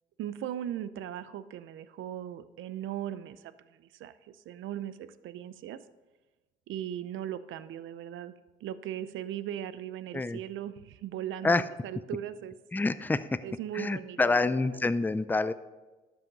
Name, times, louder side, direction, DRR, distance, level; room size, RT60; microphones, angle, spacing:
voice 1, 0.2-5.8 6.7-8.3 8.6-12.5 13.4-14.7, right 11 dB, 80° right, 14 dB, 0.6 m, -38 dB
voice 2, 12.7-13.4 13.7-15.5, left 3 dB, 10° left, 13 dB, 0.4 m, -27 dB
12.0 x 6.3 x 5.3 m, 1.2 s
cardioid pair, 90°, 20 cm